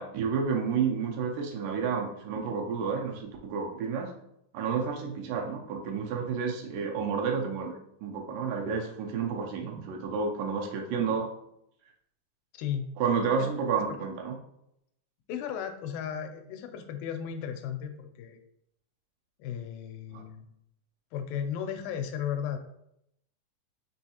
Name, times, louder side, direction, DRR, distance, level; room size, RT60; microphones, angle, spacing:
voice 1, 0.0-4.1 4.5-7.7 8.0-11.3 13.0-14.3 20.1-20.2, right 6 dB, 80° right, 1 dB, 2.1 m, -30 dB
voice 2, 12.5-12.9 13.4-13.5 14.0-14.1 15.3-18.4 19.4-20.5 21.1-22.6, left 8 dB, 85° left, 6 dB, 2.3 m, -35 dB
5.4 x 3.1 x 2.8 m, 0.77 s
omnidirectional pair, 3.9 m